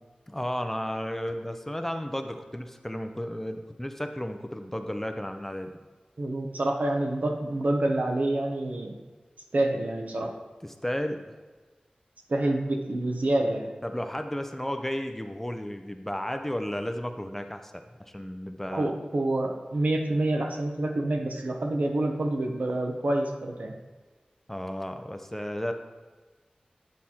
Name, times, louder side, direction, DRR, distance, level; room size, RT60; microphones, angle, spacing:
voice 1, 0.3-5.7 10.6-11.2 13.8-18.9 24.5-25.7, equal, 10° left, 6 dB, 0.5 m, -33 dB
voice 2, 6.2-8.9 9.5-10.3 12.3-13.7 18.7-23.7, right 1 dB, 65° right, 3 dB, 0.9 m, -27 dB
9.4 x 4.2 x 4.4 m, 1.3 s
wide cardioid pair, 75°, 3 cm